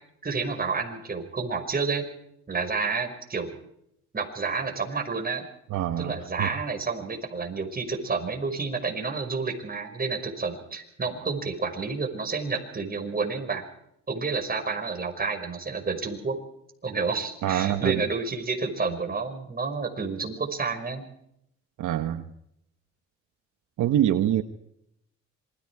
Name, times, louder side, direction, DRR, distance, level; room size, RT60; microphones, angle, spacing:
voice 1, 0.2-2.0 2.5-3.6 4.1-5.4 6.0-13.6 14.1-16.3 16.8-21.0, right 4 dB, 30° right, 5.6 m, -30 dB
voice 2, 5.7-6.5 17.4-18.1 21.8-22.3 23.8-24.4, right 11 dB, 80° right, 1.3 m, -25 dB
27.0 x 22.0 x 4.8 m
cardioid pair, 90°, 30 cm